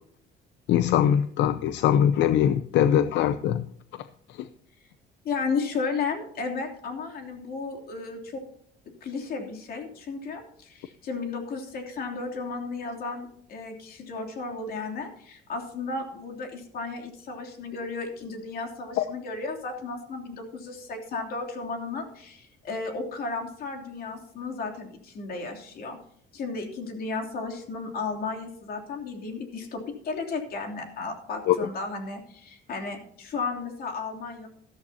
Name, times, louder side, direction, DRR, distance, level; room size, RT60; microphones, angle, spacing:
voice 1, 0.7-3.6 19.0-19.1 31.5-31.6, left 10 dB, 75° left, 13 dB, 0.7 m, -22 dB
voice 2, 5.2-8.4 9.0-26.0 26.3-34.5, left 4 dB, 55° left, 3 dB, 3.2 m, -34 dB
14.0 x 13.5 x 2.8 m, 0.66 s
cardioid pair, 145°, 19 cm